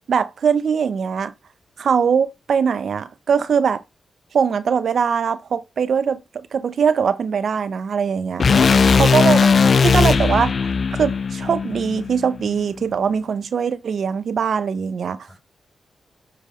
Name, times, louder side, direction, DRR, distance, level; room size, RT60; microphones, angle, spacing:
voice 1, 0.1-1.3 1.8-3.8 4.3-8.4 9.0-9.5 9.8-10.7 11.0-15.2, right 6 dB, 70° right, 0.5 m, -21 dB
sound 1, 8.4-12.6, left 5 dB, 60° left, 0.6 m, -17 dB
voice 2, 15.3-15.4, left 2 dB, 30° left, 5.0 m, -34 dB
7.7 x 3.2 x 4.9 m
supercardioid pair, 40°, 0 cm